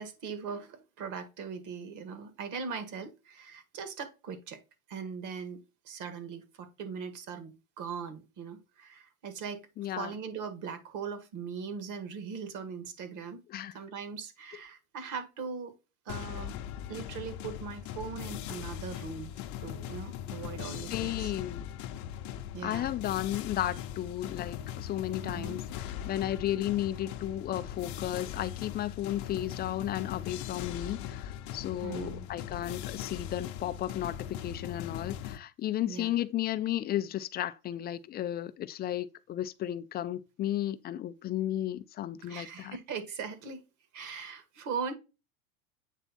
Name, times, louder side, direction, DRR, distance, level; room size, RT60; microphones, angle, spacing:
voice 1, 0.0-4.6 4.9-9.7 10.0-13.4 13.7-15.7 16.1-16.5 16.9-19.3 19.6-21.3 22.5-22.9 25.2-25.6 31.8-32.3 35.9-36.1 42.2-43.6 43.9-44.9, right 6 dB, 45° right, 1.8 m, -40 dB
voice 2, 9.8-10.1 13.5-13.8 20.9-21.7 22.6-42.8, left 12 dB, 25° left, 0.5 m, -34 dB
sound 1, 16.1-35.4, left 11 dB, 45° left, 0.8 m, -40 dB
8.2 x 3.3 x 4.2 m
hypercardioid pair, 95°, 42 cm